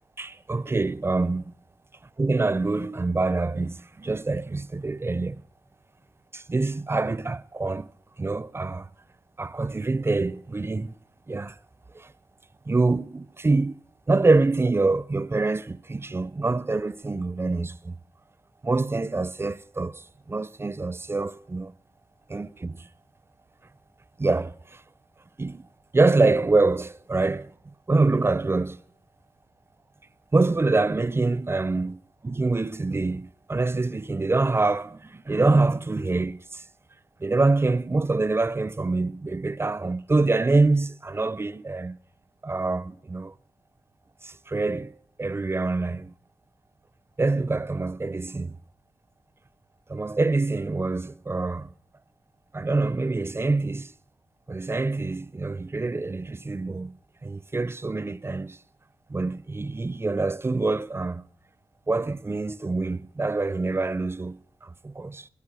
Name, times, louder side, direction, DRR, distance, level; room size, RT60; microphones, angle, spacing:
voice 1, 0.2-1.5 2.2-5.4 6.3-7.9 8.2-8.9 9.4-11.0 11.3-11.6 11.9-12.1 12.7-13.8 14.1-18.0 18.6-21.7 22.3-22.9 24.2-24.8 25.4-25.7 25.9-27.5 27.9-28.8 30.3-36.6 37.2-42.0 42.4-43.3 44.2-46.1 47.2-48.6 49.9-51.7 52.5-53.9 54.5-58.6 59.1-61.2 61.9-65.3, right 3 dB, 25° right, 0.5 m, -25 dB
17.5 x 8.5 x 6.2 m
cardioid pair, 45°, 9 cm